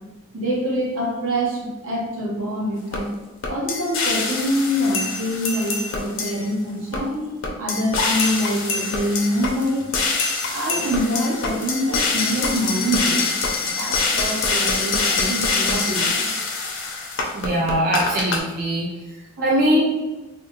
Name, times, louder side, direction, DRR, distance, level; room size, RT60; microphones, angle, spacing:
voice 1, 0.3-3.1 3.5-9.9 10.5-13.3 13.6-16.1 19.4-19.7, equal, 75° right, -4 dB, 1.0 m, -25 dB
sound 1, 2.9-3.0 3.4-6.5 6.9-7.0 7.4-18.4, left 4 dB, 60° left, 0.5 m, -24 dB
voice 2, 17.3-18.9 19.4-19.8, right 1 dB, 45° right, -3 dB, 0.3 m, -21 dB
3.4 x 2.2 x 2.8 m, 1.1 s
head